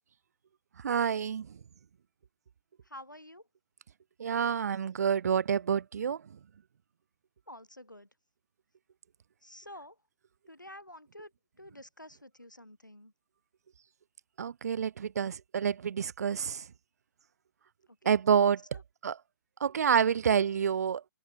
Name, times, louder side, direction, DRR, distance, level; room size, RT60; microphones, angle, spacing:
voice 1, 0.8-1.6 4.2-6.2 14.4-16.7 18.1-18.6 19.0-19.2 19.6-21.1, right 7 dB, 55° right, 0.4 m, -28 dB
voice 2, 2.8-3.5 7.5-8.1 9.4-10.0 10.5-11.3 11.6-13.1 17.9-18.1 18.7-18.8, left 1 dB, 85° left, 6.3 m, -49 dB
figure-of-eight pair, 120°, 10 cm